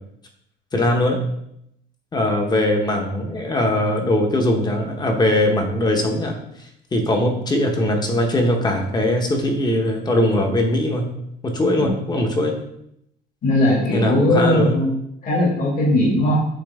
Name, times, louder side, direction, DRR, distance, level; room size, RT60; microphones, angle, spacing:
voice 1, 0.7-1.2 2.1-6.4 6.9-11.1 11.4-12.5 13.9-14.7, left 1 dB, 20° left, 3 dB, 1.2 m, -20 dB
voice 2, 13.4-14.9 15.2-16.4, left 1 dB, 45° left, -5 dB, 2.4 m, -18 dB
8.6 x 3.3 x 3.6 m, 0.77 s
cardioid pair, 115°, 19 cm